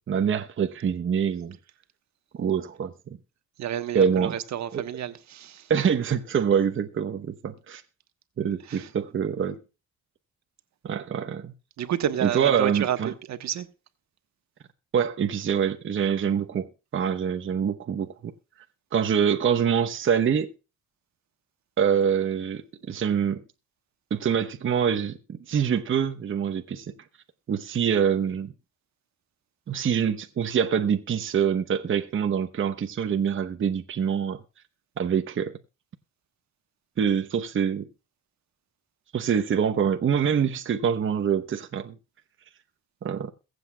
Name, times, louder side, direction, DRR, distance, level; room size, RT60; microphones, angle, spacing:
voice 1, 0.0-1.6 2.4-3.2 3.9-4.4 4.7-4.8 5.7-7.8 8.4-9.6 10.8-11.5 12.2-13.1 14.9-16.7 16.9-18.3 18.9-20.5 21.8-23.4 24.1-26.9 27.5-28.5 29.7-34.4 35.0-35.6 37.0-37.9 39.1-41.9 43.0-43.3, right 7 dB, 40° right, 0.9 m, -25 dB
voice 2, 3.6-5.7 8.7-8.9 11.8-13.7, right 10 dB, 65° right, 1.2 m, -30 dB
22.0 x 8.0 x 2.3 m
cardioid pair, 90°, 30 cm